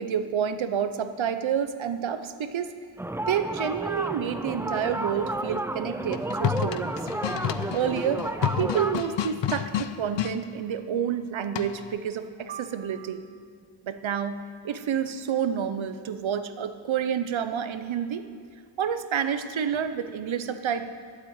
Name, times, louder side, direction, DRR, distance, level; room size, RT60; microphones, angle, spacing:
voice 1, 0.0-2.7 3.3-7.0 7.7-8.2 8.6-13.2 13.8-18.3 18.8-20.9, right 8 dB, 90° right, 10 dB, 0.8 m, -29 dB
sound 1, 3.0-9.0, right 1 dB, 5° right, 0.3 m, -32 dB
sound 2, 6.0-10.4 11.5-12.0, left 10 dB, 75° left, 0.6 m, -30 dB
12.0 x 7.7 x 8.9 m, 2.3 s
wide cardioid pair, 110°, 45 cm